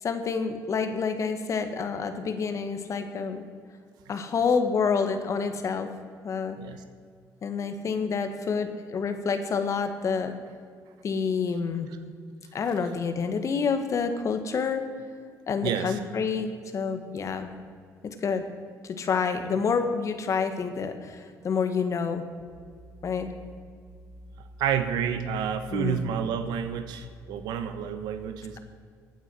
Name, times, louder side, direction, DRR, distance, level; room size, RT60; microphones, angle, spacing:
voice 1, 0.0-3.4 4.1-5.9 6.2-6.6 7.4-10.3 11.0-11.9 12.5-14.8 15.5-17.5 18.0-18.4 18.8-22.2 23.0-23.3 25.7-26.0, left 5 dB, 45° left, 8 dB, 1.6 m, -28 dB
voice 2, 15.6-16.0 19.5-19.6 24.4-28.6, right 8 dB, 85° right, 9 dB, 1.0 m, -30 dB
16.0 x 9.2 x 6.3 m, 2.1 s
cardioid pair, 95°, 7 cm